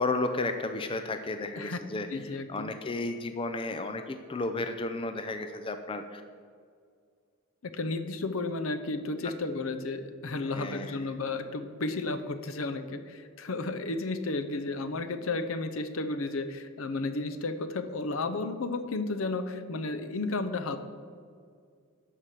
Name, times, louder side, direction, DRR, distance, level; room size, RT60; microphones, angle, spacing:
voice 1, 0.0-2.1 2.5-6.2 10.5-11.0, left 2 dB, 25° left, 8 dB, 0.4 m, -33 dB
voice 2, 2.1-2.7 7.6-20.8, left 3 dB, 70° left, 10 dB, 0.7 m, -33 dB
11.5 x 4.8 x 6.7 m, 2.1 s
head